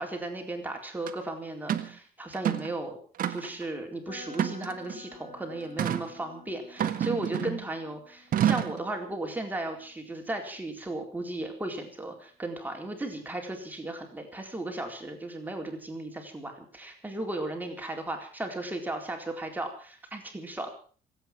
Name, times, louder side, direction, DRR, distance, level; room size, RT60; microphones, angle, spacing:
voice 1, 0.0-3.0 3.3-20.7, right 2 dB, 10° right, 3 dB, 4.1 m, -36 dB
sound 1, 1.1-1.2 1.7-1.9 2.3-2.7 3.2-3.6 4.3-5.0 5.8-6.1 6.8-7.7 8.3-8.8, right 10 dB, 55° right, 1.8 m, -28 dB
sound 2, 4.0-12.0, left 2 dB, 30° left, 6.1 m, -53 dB
26.0 x 9.1 x 6.1 m, 0.43 s
cardioid pair, 110°, 17 cm